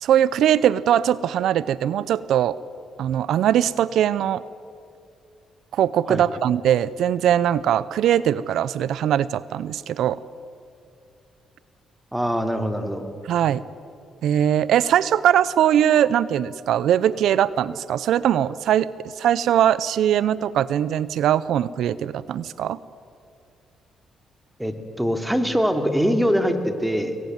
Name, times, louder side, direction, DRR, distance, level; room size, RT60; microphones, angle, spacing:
voice 1, 0.0-2.6 3.0-4.4 5.7-10.2 13.3-13.6 14.2-18.9 19.2-22.8, right 10 dB, 75° right, 18 dB, 0.6 m, -21 dB
voice 2, 12.1-13.0 24.6-27.2, equal, 5° right, 6 dB, 2.8 m, -23 dB
25.0 x 21.0 x 9.4 m, 2.5 s
cardioid pair, 90°, 0 cm